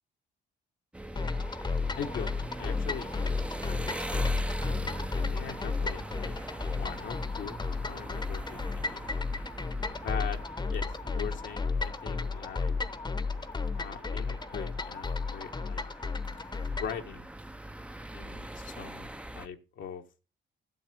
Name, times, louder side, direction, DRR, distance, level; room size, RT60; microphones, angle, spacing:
sound 1, 0.9-19.5, right 1 dB, 5° right, 0.6 m, -41 dB
sound 2, 1.2-17.0, left 4 dB, 20° left, 0.9 m, -33 dB
voice 1, 2.0-2.3 2.6-4.4 5.1-6.3 6.7-9.1 10.0-10.4 10.7-12.7 13.8-15.8 16.8-17.3 18.1-19.1 19.3-20.2, left 7 dB, 70° left, 3 dB, 1.2 m, -41 dB
12.0 x 4.2 x 8.2 m, 0.34 s
cardioid pair, 90°, 20 cm